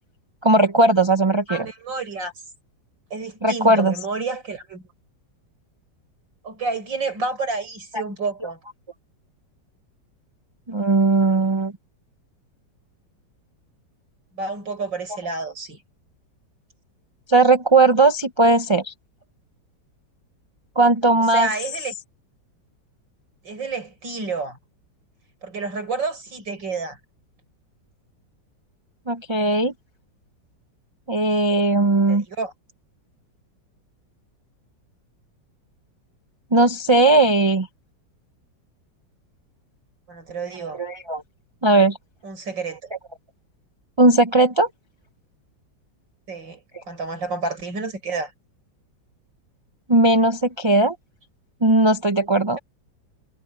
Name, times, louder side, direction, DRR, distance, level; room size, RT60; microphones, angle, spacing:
voice 1, 0.4-1.7 3.4-3.9 7.9-8.0 10.7-11.7 17.3-18.9 20.8-21.5 29.1-29.7 31.1-32.2 36.5-37.7 40.7-41.2 41.6-42.0 44.0-44.7 49.9-51.0 51.6-52.6, right 2 dB, 35° right, 0.4 m, -17 dB
voice 2, 1.5-2.3 3.1-4.8 6.4-8.6 14.3-15.8 21.3-21.9 23.4-24.6 25.4-27.0 32.1-32.5 40.1-40.8 42.2-42.9 46.3-48.3, right 3 dB, 90° right, 6.1 m, -29 dB
omnidirectional pair, 1.9 m